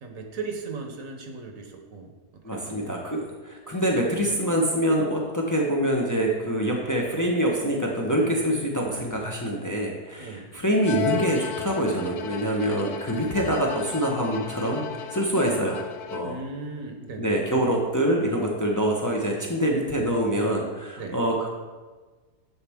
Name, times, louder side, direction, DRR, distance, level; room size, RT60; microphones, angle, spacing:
voice 1, 0.0-2.1 2.4-2.9 10.2-10.5 16.2-17.4 21.0-21.2, right 4 dB, 60° right, 3 dB, 1.1 m, -37 dB
voice 2, 2.4-15.8 16.1-16.5 17.2-21.5, right 1 dB, 25° left, -1 dB, 0.4 m, -25 dB
Bowed string instrument, 10.8-16.5, left 9 dB, 75° left, 1.1 m, -35 dB
11.5 x 4.2 x 3.5 m, 1.3 s
omnidirectional pair, 1.7 m